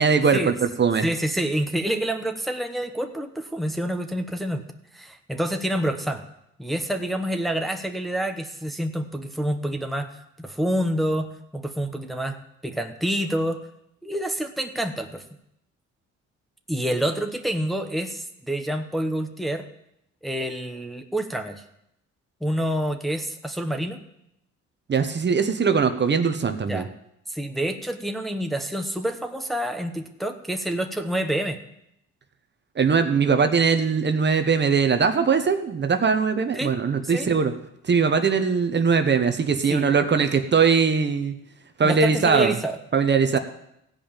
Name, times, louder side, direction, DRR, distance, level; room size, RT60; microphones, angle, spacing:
voice 1, 0.0-1.1 24.9-26.9 32.8-37.5 37.8-41.3 41.8-42.6 42.9-43.4, right 5 dB, 35° right, 7 dB, 1.0 m, -21 dB
voice 2, 1.0-4.6 4.9-6.2 6.6-10.1 10.4-13.6 14.0-15.2 16.7-19.7 20.2-21.6 22.4-24.0 26.7-26.9 27.3-31.6 36.5-36.7 37.1-37.3 39.7-39.9 41.8-42.8, right 1 dB, ahead, 5 dB, 1.0 m, -27 dB
15.5 x 5.4 x 8.9 m, 0.80 s
cardioid pair, 90°, 30 cm